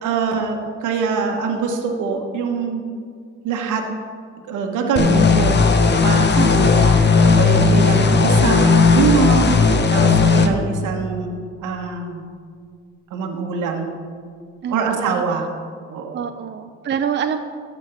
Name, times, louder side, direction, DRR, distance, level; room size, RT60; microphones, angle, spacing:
voice 1, 0.0-2.8 3.4-3.8 4.4-5.6 6.0-12.2 13.1-13.9 14.7-15.5 15.9-16.2, right 5 dB, 85° right, 2 dB, 1.2 m, -23 dB
sound 1, 5.0-10.5, left 4 dB, 35° left, 0.9 m, -15 dB
voice 2, 6.3-6.7 14.6-14.8 15.1-15.2 16.1-17.4, right 8 dB, 40° right, 7 dB, 0.5 m, -25 dB
12.5 x 4.5 x 7.1 m, 2.1 s
cardioid pair, 90°, 30 cm